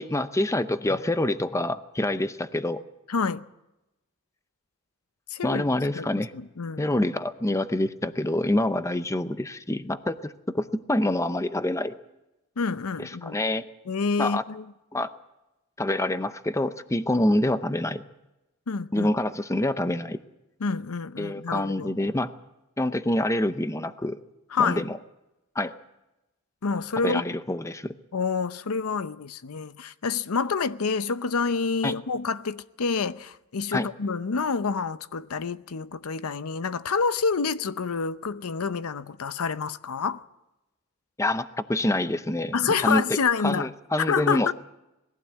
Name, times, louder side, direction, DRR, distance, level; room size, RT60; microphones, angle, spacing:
voice 1, 0.0-2.8 5.4-6.3 6.8-12.0 13.0-13.7 14.2-14.4 14.9-15.1 15.8-18.0 18.9-20.2 21.2-22.3 22.8-24.2 24.6-25.0 25.6-25.7 27.0-27.9 31.8-32.0 33.7-33.9 41.2-43.2 43.4-44.5, left 1 dB, 15° left, 0.7 m, -26 dB
voice 2, 3.1-3.4 5.3-5.6 5.9-6.1 6.3-6.9 12.6-13.4 13.9-14.6 18.7-19.1 20.6-21.9 24.5-24.9 26.6-27.2 28.1-40.2 42.5-43.7 44.0-44.5, left 5 dB, 85° left, 0.7 m, -28 dB
20.5 x 15.5 x 8.3 m
head